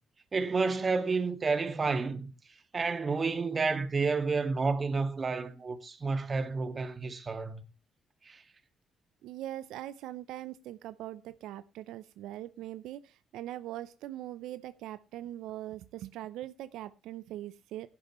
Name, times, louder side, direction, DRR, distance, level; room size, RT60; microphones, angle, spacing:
voice 1, 0.3-2.3 2.7-7.6 8.3-8.4, right 4 dB, 35° right, 1.8 m, -30 dB
voice 2, 9.2-17.9, right 13 dB, 90° right, 0.6 m, -41 dB
16.0 x 11.0 x 3.1 m
cardioid pair, 90°, 0 cm